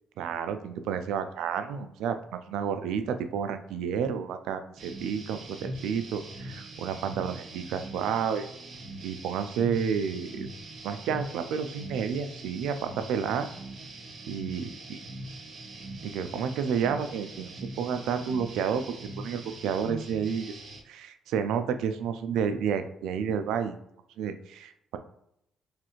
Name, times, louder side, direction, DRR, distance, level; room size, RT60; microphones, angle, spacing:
voice 1, 0.2-8.5 9.0-10.5 10.8-13.5 14.3-15.0 16.0-23.8 24.2-25.0, right 7 dB, 90° right, 9 dB, 0.3 m, -31 dB
sound 1, 4.8-20.8, right 2 dB, 60° right, 0.9 m, -42 dB
3.2 x 2.4 x 3.0 m, 0.75 s
cardioid pair, 90°, 0 cm